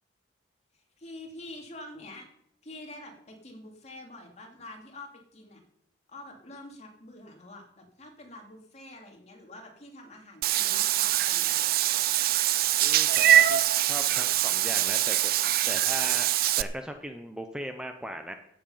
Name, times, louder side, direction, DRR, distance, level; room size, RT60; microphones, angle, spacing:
voice 1, 0.7-2.3 2.6-5.6 6.1-11.7, left 2 dB, 40° left, 2 dB, 2.5 m, -46 dB
Meow / Water / Bathtub (filling or washing), 10.4-16.6, right 12 dB, 55° right, 0.4 m, -24 dB
voice 2, 12.8-13.6 13.9-15.3 15.7-18.3, equal, 5° right, 6 dB, 0.7 m, -38 dB
15.5 x 7.7 x 5.6 m, 0.75 s
head